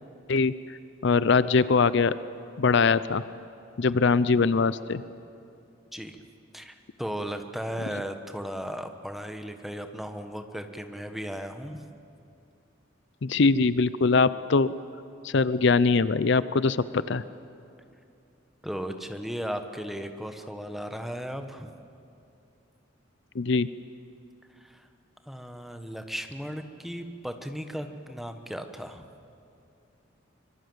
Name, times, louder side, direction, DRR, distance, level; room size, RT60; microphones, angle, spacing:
voice 1, 1.0-2.1 2.6-3.2 3.8-5.0 13.2-14.7 15.2-17.2 23.4-23.7, left 4 dB, 65° left, 16 dB, 0.6 m, -22 dB
voice 2, 5.9-6.2 6.5-11.8 18.6-21.7 24.6-24.9 25.3-29.1, equal, ahead, 7 dB, 1.3 m, -36 dB
25.0 x 22.5 x 7.9 m, 2.6 s
head